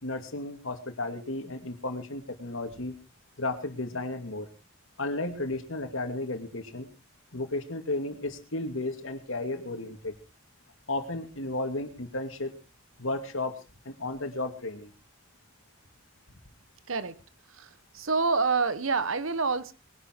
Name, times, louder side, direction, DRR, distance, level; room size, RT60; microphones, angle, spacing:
voice 1, 0.0-3.0 3.4-4.5 5.0-6.9 7.3-10.1 10.9-12.5 13.0-13.6 13.8-14.9, left 2 dB, 75° left, 2.5 m, -33 dB
voice 2, 17.5-19.7, right 4 dB, 75° right, 1.2 m, -27 dB
22.0 x 11.0 x 4.6 m
head